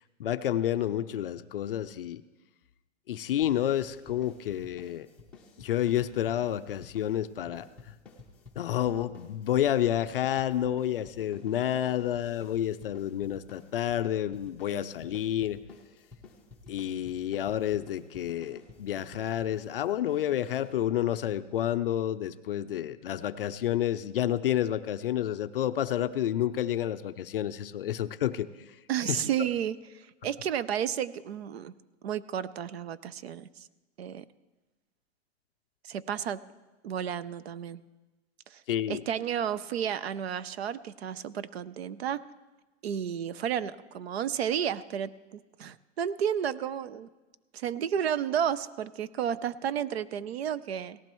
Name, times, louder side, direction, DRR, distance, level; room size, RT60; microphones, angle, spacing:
voice 1, 0.2-2.2 3.1-5.1 5.6-7.7 8.6-15.6 16.7-28.5 29.0-29.2 38.7-39.0, left 11 dB, 45° left, 11 dB, 0.4 m, -29 dB
sound 1, 3.4-21.2, left 4 dB, 5° left, 0.6 m, -52 dB
voice 2, 28.9-31.7 32.0-33.7 34.0-34.2 35.8-36.4 36.8-37.8 38.5-38.6 38.9-42.2 42.8-47.1 47.5-51.0, right 9 dB, 55° right, 17 dB, 0.5 m, -32 dB
18.0 x 15.0 x 3.0 m, 1.1 s
hypercardioid pair, 165°, 38 cm